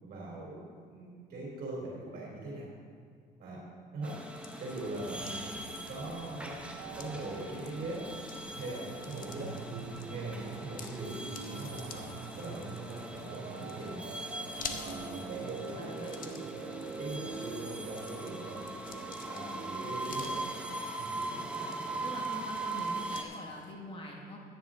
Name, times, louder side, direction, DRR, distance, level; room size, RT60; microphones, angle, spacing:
voice 1, 0.0-2.7 3.4-3.6 3.9-4.2 4.6-6.6 7.0-8.0 8.5-9.5 10.1-12.1 12.4-14.0 14.7-15.9 17.0-18.6 19.2-20.4 20.8-21.2, right 2 dB, 55° right, -4 dB, 3.2 m, -41 dB
sound 1, 4.0-23.2, right 2 dB, 5° right, 1.1 m, -41 dB
sound 2, 4.2-23.7, left 6 dB, 55° left, 1.1 m, -51 dB
sound 3, 4.8-20.8, right 5 dB, 80° right, 1.2 m, -45 dB
voice 2, 15.7-16.4 22.0-24.4, left 2 dB, 30° left, -1 dB, 1.7 m, -44 dB
14.0 x 9.7 x 3.7 m, 2.1 s
cardioid pair, 110°, 17 cm